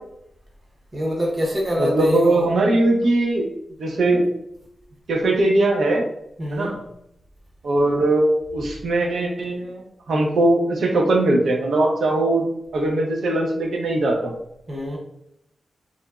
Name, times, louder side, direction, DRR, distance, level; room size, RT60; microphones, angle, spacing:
voice 1, 0.9-2.5 6.4-6.8 14.7-15.0, equal, 35° right, -2 dB, 0.8 m, -25 dB
voice 2, 1.8-3.5 3.8-4.2 5.1-6.0 6.5-6.8 7.6-12.4 12.7-14.3, right 2 dB, 80° right, 0 dB, 0.6 m, -20 dB
2.9 x 2.5 x 2.3 m, 0.78 s
wide cardioid pair, 125°, 0 cm